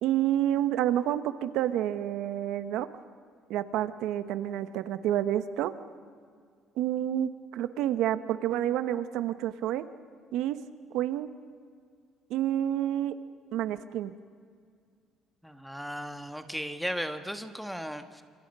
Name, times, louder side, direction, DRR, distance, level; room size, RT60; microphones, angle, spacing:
voice 1, 0.0-2.9 3.5-5.7 6.8-9.8 10.3-10.6 10.9-11.3 12.3-13.1 13.5-14.1, right 12 dB, 85° right, 11 dB, 1.2 m, -29 dB
voice 2, 15.4-18.2, equal, ahead, 8 dB, 1.4 m, -36 dB
28.5 x 26.5 x 5.5 m, 2.1 s
cardioid pair, 145°, 0 cm